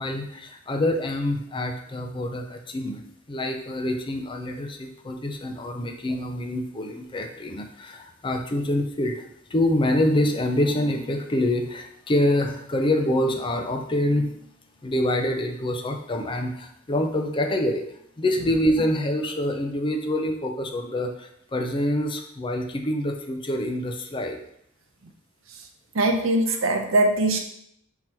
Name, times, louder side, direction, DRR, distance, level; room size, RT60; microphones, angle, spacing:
voice 1, 0.0-3.0 3.3-9.2 9.5-17.8 18.2-24.4, left 1 dB, 25° left, 4 dB, 0.5 m, -26 dB
voice 2, 25.9-27.4, right 1 dB, 75° right, 5 dB, 0.6 m, -21 dB
3.8 x 2.9 x 4.4 m, 0.74 s
head